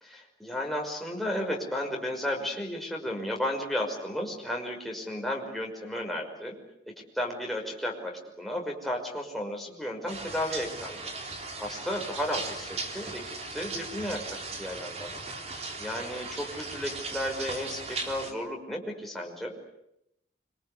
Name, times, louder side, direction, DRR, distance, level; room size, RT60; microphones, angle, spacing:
voice 1, 0.4-6.6 6.9-15.1 15.4-19.6, left 1 dB, ahead, -1 dB, 5.7 m, -34 dB
sound 1, 10.1-18.3, right 3 dB, 40° right, 3.7 m, -38 dB
26.5 x 25.0 x 8.3 m, 0.80 s
head